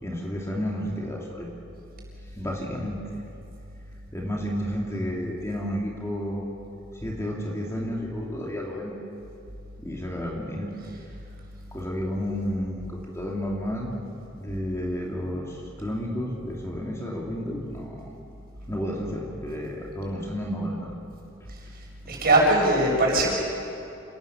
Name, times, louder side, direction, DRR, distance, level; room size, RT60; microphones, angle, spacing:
voice 1, 0.0-1.5 2.3-3.0 4.1-6.5 7.0-9.0 9.8-10.8 11.7-13.9 14.4-18.1 18.7-20.9, equal, 15° left, -2 dB, 2.8 m, -31 dB
voice 2, 22.1-23.3, right 1 dB, 50° right, -2 dB, 7.2 m, -20 dB
28.0 x 19.0 x 7.2 m, 2.8 s
head